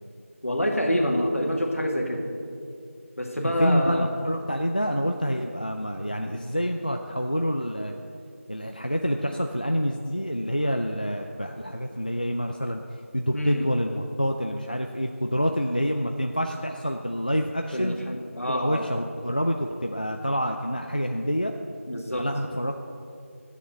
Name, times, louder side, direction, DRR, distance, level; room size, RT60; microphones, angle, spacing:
voice 1, 0.4-2.2 3.2-4.1 13.3-13.6 17.7-18.8 21.9-22.3, equal, 70° left, 1 dB, 2.0 m, -26 dB
voice 2, 3.4-7.9 8.5-12.8 13.1-18.0 18.5-21.5 22.2-22.8, equal, 35° left, 4 dB, 0.4 m, -27 dB
9.7 x 7.3 x 7.5 m, 2.5 s
figure-of-eight pair, 180°, 8 cm